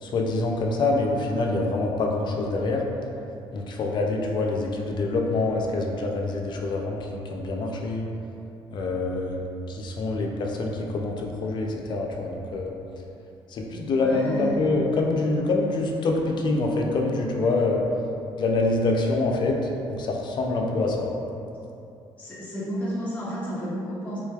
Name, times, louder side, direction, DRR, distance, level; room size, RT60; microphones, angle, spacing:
voice 1, 0.0-2.8 3.5-8.1 8.7-12.7 13.5-17.8 18.4-19.6 19.9-21.1, left 2 dB, 55° left, 0 dB, 0.5 m, -25 dB
voice 2, 14.0-14.7 22.2-24.2, equal, 15° left, -9 dB, 0.7 m, -31 dB
3.6 x 3.1 x 2.3 m, 2.7 s
cardioid pair, 90°, 9 cm